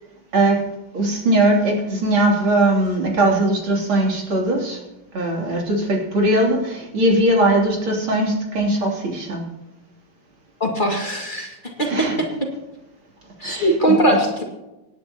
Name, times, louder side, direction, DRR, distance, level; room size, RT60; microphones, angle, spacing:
voice 1, 0.9-4.8 5.1-9.4 11.9-12.2 13.4-13.9, right 1 dB, 85° right, -1 dB, 3.9 m, -20 dB
voice 2, 10.6-12.3 13.4-14.4, right 1 dB, 25° left, -1 dB, 2.3 m, -20 dB
26.0 x 10.5 x 2.9 m, 0.99 s
omnidirectional pair, 2.2 m